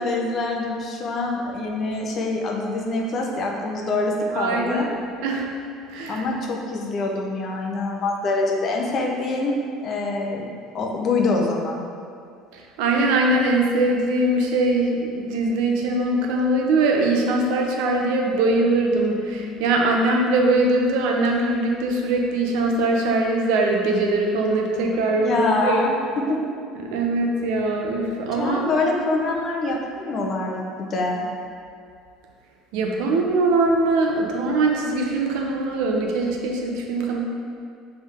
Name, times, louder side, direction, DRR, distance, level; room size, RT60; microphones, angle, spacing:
voice 1, 0.0-4.9 6.1-10.5 10.7-11.8 25.1-26.0 26.3-26.4 28.4-31.2, left 2 dB, 35° left, 0 dB, 0.8 m, -25 dB
voice 2, 4.3-5.5 5.9-6.3 12.5-25.9 26.7-28.7 32.7-37.4, right 2 dB, 75° right, 1 dB, 0.8 m, -22 dB
7.5 x 3.4 x 3.6 m, 2.3 s
cardioid pair, 140°, 0 cm